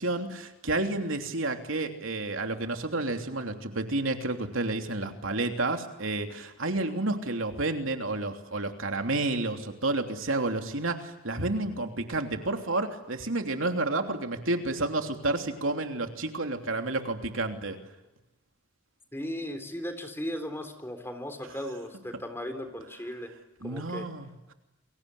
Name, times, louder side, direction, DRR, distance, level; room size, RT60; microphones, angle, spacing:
voice 1, 0.0-17.8 23.6-24.5, right 2 dB, 75° right, 5 dB, 3.1 m, -30 dB
voice 2, 19.1-23.3 23.6-24.0, equal, 10° left, 7 dB, 3.6 m, -36 dB
30.0 x 23.0 x 8.4 m, 1.0 s
head